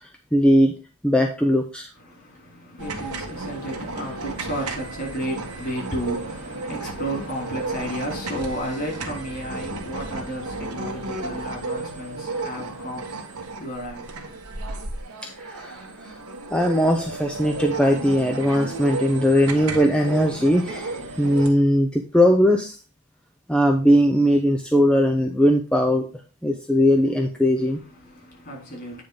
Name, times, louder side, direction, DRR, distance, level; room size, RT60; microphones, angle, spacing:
voice 1, 0.3-0.7 1.0-1.9 15.4-15.8 16.5-22.7 23.5-26.0 26.4-27.8, equal, 5° left, 0.6 m, -19 dB
voice 2, 2.0-14.5 27.9-29.0, right 1 dB, 45° left, 4.2 m, -33 dB
sound 1, 2.8-21.5, right 3 dB, 85° right, 1.6 m, -33 dB
9.3 x 3.6 x 5.2 m
head